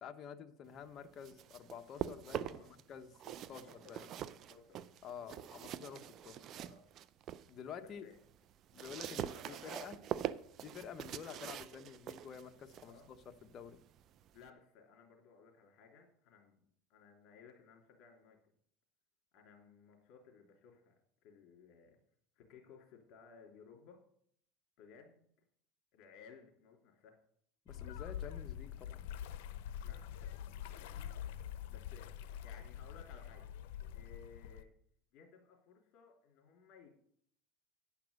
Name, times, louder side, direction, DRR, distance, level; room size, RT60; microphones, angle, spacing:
voice 1, 0.0-4.1 5.0-6.4 7.5-8.1 8.7-10.0 10.6-13.2 13.4-13.8 27.7-29.1, left 7 dB, 40° left, 7 dB, 1.0 m, -50 dB
sound 1, 1.0-2.8 3.1-7.5 7.9-14.5, right 10 dB, 45° right, 0.4 m, -44 dB
voice 2, 2.4-3.1 3.5-4.2 4.5-5.0 5.3-5.8 6.6-6.8 7.8-8.2 8.9-9.9 12.8-13.1 14.3-16.6 16.9-18.5 19.3-22.0 22.3-24.0 24.8-25.3 25.9-27.2 29.8-31.1 31.7-33.5 33.9-34.7 35.1-36.9, left 5 dB, 55° left, 2 dB, 3.2 m, -60 dB
sound 2, 27.7-34.6, left 10 dB, 80° left, 0.7 m, -45 dB
10.0 x 5.9 x 6.6 m, 0.65 s
supercardioid pair, 120°, 0 cm